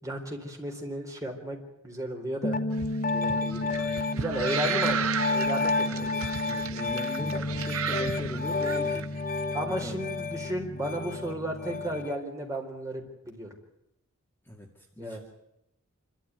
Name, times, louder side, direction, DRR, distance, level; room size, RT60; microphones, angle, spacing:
voice 1, 0.0-1.6 1.8-2.6 3.1-6.2 9.5-13.6 15.0-15.2, equal, 15° right, 1 dB, 4.0 m, -34 dB
Piano, 2.4-12.1, left 3 dB, 40° left, 1.4 m, -30 dB
sound 1, 2.7-9.1, right 7 dB, 90° right, 0.9 m, -34 dB
voice 2, 6.4-9.1 9.8-10.0 14.5-14.7 15.0-15.2, left 1 dB, 10° left, 0 dB, 2.3 m, -40 dB
26.0 x 13.5 x 9.6 m, 0.86 s
head